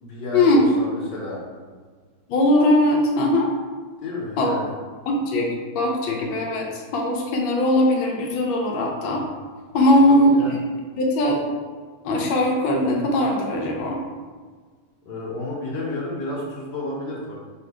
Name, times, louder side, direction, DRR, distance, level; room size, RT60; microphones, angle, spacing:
voice 1, 0.0-1.4 4.0-4.7 9.9-10.6 15.0-17.4, left 2 dB, 70° left, -4 dB, 1.5 m, -31 dB
voice 2, 2.3-3.5 4.4-4.6 5.1-9.2 9.7-10.6 11.0-11.4 12.0-14.0, left 1 dB, 90° left, 0 dB, 1.4 m, -20 dB
3.5 x 2.6 x 4.6 m, 1.5 s
omnidirectional pair, 2.1 m